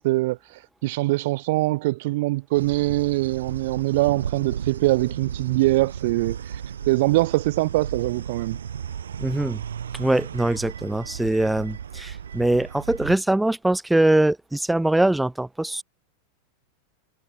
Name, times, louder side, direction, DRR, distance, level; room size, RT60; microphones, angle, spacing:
voice 1, 0.0-8.6, right 20 dB, 65° right, 0.6 m, -23 dB
sound 1, 2.5-13.2, right 8 dB, 85° right, 3.1 m, -34 dB
voice 2, 9.2-9.6 9.9-15.8, right 1 dB, 5° right, 1.4 m, -22 dB
hypercardioid pair, 100°, 0 cm